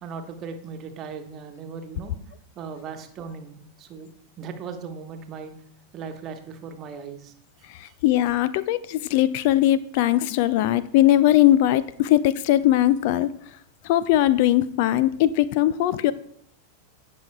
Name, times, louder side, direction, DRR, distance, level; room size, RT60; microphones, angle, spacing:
voice 1, 0.0-2.2 2.5-4.1 4.4-5.5 5.9-7.3 7.6-8.0, right 5 dB, 30° right, 6 dB, 1.2 m, -38 dB
voice 2, 8.0-13.3 13.8-16.1, left 13 dB, 50° left, 17 dB, 0.3 m, -20 dB
17.5 x 6.1 x 2.3 m, 0.66 s
figure-of-eight pair, 90°, 0 cm